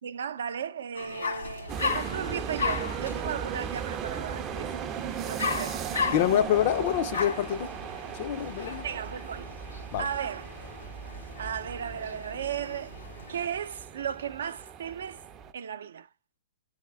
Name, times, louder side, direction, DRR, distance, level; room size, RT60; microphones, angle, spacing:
voice 1, 0.0-4.8 5.2-5.8 8.8-9.5 10.0-10.5 11.4-12.9 13.3-15.2 15.5-16.1, right 8 dB, 75° right, 0.5 m, -35 dB
sound 1, 0.9-13.4, left 5 dB, 85° left, 2.0 m, -37 dB
sound 2, 1.7-15.5, right 8 dB, 25° right, 0.4 m, -37 dB
voice 2, 6.1-7.7 8.1-8.9 9.9-10.1, left 11 dB, 50° left, 0.5 m, -26 dB
9.4 x 3.5 x 3.4 m
hypercardioid pair, 140°, 0 cm